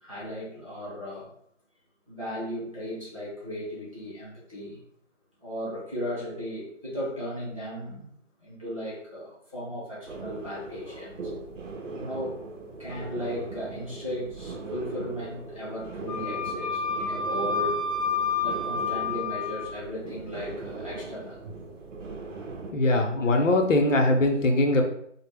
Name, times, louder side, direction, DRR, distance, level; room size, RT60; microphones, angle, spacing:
voice 1, 0.0-1.3 2.1-4.8 5.4-8.0 8.4-11.3 12.0-12.4 12.8-17.8 18.4-21.4 23.2-23.4, equal, 30° right, -9 dB, 0.6 m, -36 dB
sound 1, 10.1-22.7, right 3 dB, 85° right, 0.6 m, -39 dB
Wind instrument woodwind instrument, 16.1-19.7, left 4 dB, 40° left, 0.6 m, -29 dB
voice 2, 22.7-24.8, left 2 dB, 85° left, 3 dB, 0.6 m, -21 dB
2.0 x 2.0 x 3.2 m, 0.70 s
figure-of-eight pair, 175°, 37 cm